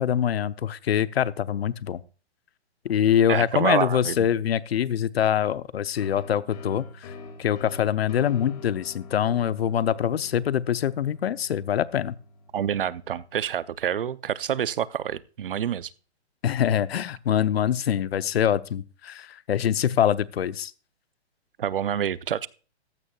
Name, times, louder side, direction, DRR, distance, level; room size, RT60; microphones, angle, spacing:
voice 1, 0.0-2.0 2.8-7.1 7.4-12.1 16.4-20.7, left 9 dB, 65° left, 0.7 m, -24 dB
voice 2, 3.3-4.2 12.5-15.9 21.6-22.5, right 9 dB, 55° right, 0.7 m, -27 dB
sound 1, 6.0-13.4, left 3 dB, 35° left, 2.3 m, -45 dB
15.0 x 13.0 x 2.4 m
hypercardioid pair, 170°, 34 cm